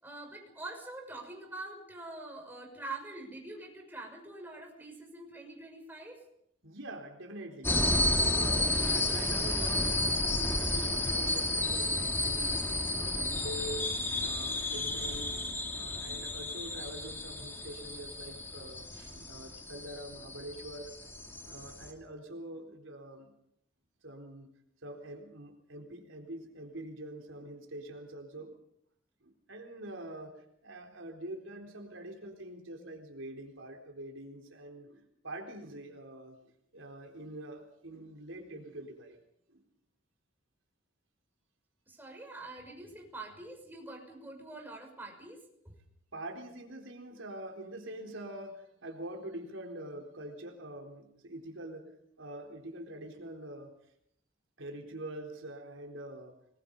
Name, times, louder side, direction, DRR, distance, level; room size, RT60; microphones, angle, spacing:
voice 1, 0.0-6.2 41.9-45.4, right 2 dB, 10° right, 1 dB, 6.2 m, -45 dB
voice 2, 6.6-7.8 8.2-12.6 12.9-15.4 15.7-20.9 21.4-23.3 24.0-24.5 24.8-28.5 29.2-39.2 39.5-39.6 46.1-51.9 52.2-53.7 54.6-56.4, right 1 dB, 75° right, 3 dB, 3.9 m, -45 dB
sound 1, 7.6-21.9, left 2 dB, 10° left, 2.8 m, -32 dB
28.5 x 21.0 x 5.4 m, 0.74 s
head